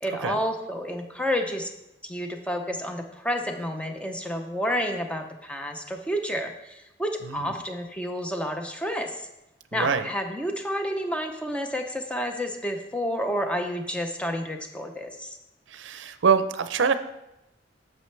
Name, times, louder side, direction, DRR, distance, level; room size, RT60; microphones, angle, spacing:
voice 1, 0.0-1.7 2.0-9.3 9.7-15.4, equal, 5° left, 4 dB, 0.6 m, -30 dB
voice 2, 9.7-10.1 15.7-16.9, right 6 dB, 80° right, 11 dB, 0.5 m, -24 dB
8.3 x 6.6 x 3.3 m, 0.90 s
head